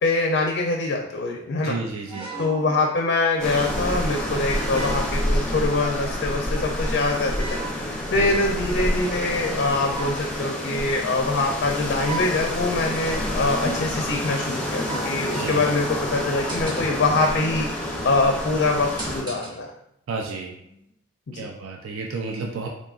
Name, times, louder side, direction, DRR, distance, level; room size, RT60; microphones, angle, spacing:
voice 1, 0.0-1.8 2.4-7.6 8.1-17.7 18.0-19.7 21.3-21.5, left 3 dB, 55° left, 2 dB, 0.4 m, -24 dB
voice 2, 1.6-2.3 8.1-8.4 15.3-15.6 20.1-20.5 21.3-22.7, right 4 dB, 75° right, 1 dB, 0.4 m, -31 dB
sound 1, 2.1-2.9 3.9-4.0 4.7-5.3 6.2-6.8 7.4-7.9 9.9-10.3 11.1-11.5 12.0-12.6 13.5-14.1 14.8-15.3 16.2-17.1 18.7-19.7 20.6-20.8, right 2 dB, 20° right, 0.9 m, -36 dB
sound 2, 3.4-19.2, left 1 dB, 5° left, 0.5 m, -28 dB
3.7 x 3.6 x 2.4 m, 0.78 s
head